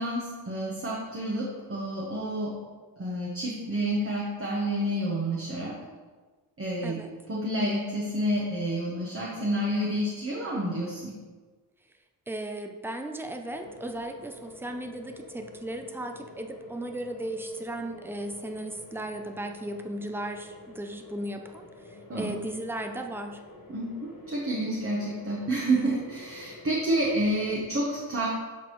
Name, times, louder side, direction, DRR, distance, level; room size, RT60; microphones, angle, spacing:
voice 1, 0.0-2.5 3.0-5.8 6.6-7.0 7.3-11.1 22.1-22.3 23.7-28.3, right 1 dB, 35° right, -5 dB, 1.1 m, -29 dB
voice 2, 12.3-23.4, right 1 dB, 5° right, 5 dB, 0.4 m, -36 dB
sound 1, 13.4-27.6, left 2 dB, 55° left, 1.1 m, -48 dB
11.5 x 4.0 x 3.1 m, 1.4 s
wide cardioid pair, 155°, 41 cm